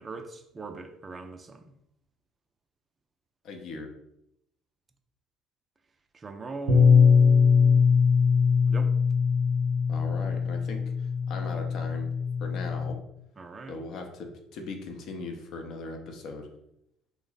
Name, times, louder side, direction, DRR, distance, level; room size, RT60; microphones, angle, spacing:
voice 1, 0.0-1.7 6.1-8.0 8.7-8.9 13.4-13.8, right 3 dB, 25° right, 0.4 m, -40 dB
voice 2, 3.4-3.9 9.9-12.1 12.4-13.0 13.7-16.5, left 3 dB, 50° left, 0.5 m, -39 dB
Bass guitar, 6.7-12.9, left 6 dB, 65° right, 0.6 m, -22 dB
3.1 x 2.0 x 3.8 m
figure-of-eight pair, 55°, 0 cm